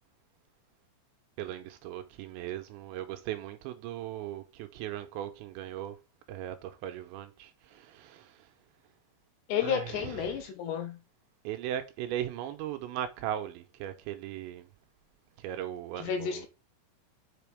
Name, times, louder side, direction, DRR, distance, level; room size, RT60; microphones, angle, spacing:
voice 1, 1.4-6.0 6.3-8.5 9.6-10.4 11.4-14.7 15.4-16.5, right 11 dB, 80° right, 2.9 m, -38 dB
voice 2, 9.5-11.0 16.0-16.5, left 8 dB, 75° left, 2.9 m, -31 dB
7.6 x 5.1 x 3.4 m
omnidirectional pair, 5.5 m